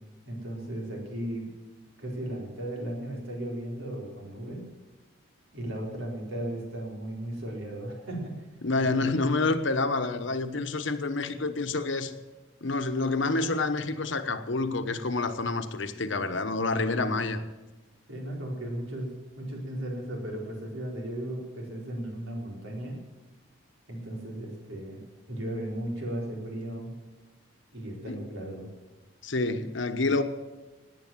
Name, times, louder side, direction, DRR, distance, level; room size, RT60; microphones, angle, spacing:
voice 1, 0.3-1.5 2.0-4.6 5.5-8.5 8.8-9.1 18.1-23.0 23.9-25.0 25.3-26.9 27.7-28.7, right 1 dB, 80° right, -1 dB, 4.5 m, -36 dB
voice 2, 8.6-12.1 12.6-17.4 28.1-28.2 29.2-30.2, left 3 dB, 70° left, 9 dB, 1.1 m, -28 dB
18.0 x 9.6 x 7.4 m, 1.2 s
head